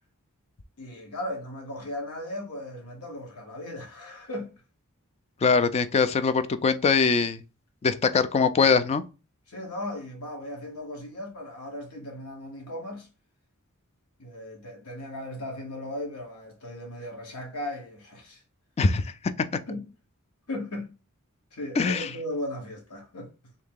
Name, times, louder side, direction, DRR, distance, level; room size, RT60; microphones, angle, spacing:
voice 1, 0.8-4.5 9.5-13.1 14.2-18.4 19.7-19.8 20.5-20.9 21.5-23.3, left 1 dB, 90° left, 1.2 m, -37 dB
voice 2, 5.4-7.4 7.8-9.0 18.8-19.1 19.4-19.5 21.8-22.1, left 5 dB, 30° left, 0.3 m, -22 dB
3.6 x 2.7 x 3.6 m
head